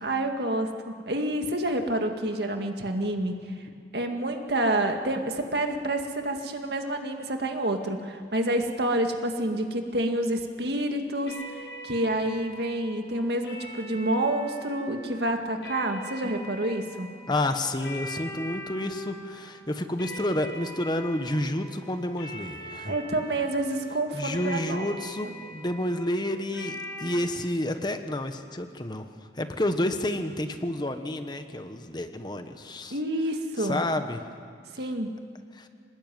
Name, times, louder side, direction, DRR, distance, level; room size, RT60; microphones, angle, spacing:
voice 1, 0.0-3.4 3.9-17.1 22.9-24.9 32.9-33.8 34.7-35.1, right 1 dB, 60° right, 4 dB, 2.1 m, -28 dB
sound 1, 11.3-27.1, equal, 85° left, 7.5 m, -43 dB
voice 2, 17.3-22.9 24.1-29.1 29.4-33.0 33.6-34.2 35.5-35.7, left 1 dB, 25° left, 7 dB, 1.2 m, -30 dB
25.0 x 19.5 x 9.4 m, 2.1 s
head